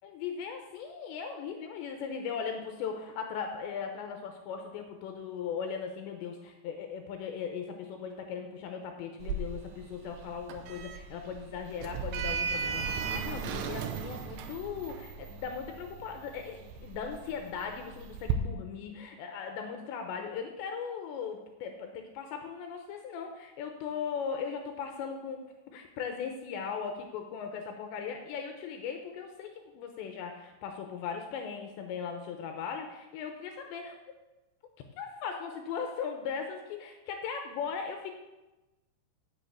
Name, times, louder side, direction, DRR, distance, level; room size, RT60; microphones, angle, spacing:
voice 1, 0.0-25.4 25.7-34.0 35.0-38.2, left 6 dB, 80° left, 4 dB, 3.0 m, -38 dB
Sliding door, 9.2-18.3, right 6 dB, 80° right, 2.6 m, -37 dB
8.7 x 6.2 x 8.2 m, 1.0 s
omnidirectional pair, 5.3 m